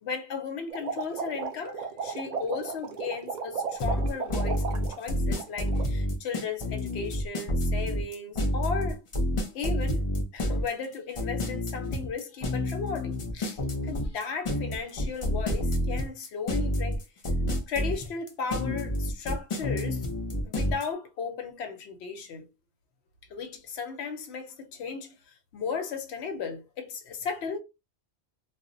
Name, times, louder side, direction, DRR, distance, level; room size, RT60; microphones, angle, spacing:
voice 1, 0.0-9.0 9.5-10.0 10.3-17.0 17.7-20.1 20.4-22.5 23.3-27.6, left 5 dB, 80° left, 0.9 m, -35 dB
sound 1, 0.7-5.0 5.3-5.8, right 5 dB, 55° right, 0.5 m, -35 dB
sound 2, 3.8-20.8, left 1 dB, 40° left, 0.5 m, -29 dB
2.1 x 2.0 x 3.7 m
omnidirectional pair, 1.1 m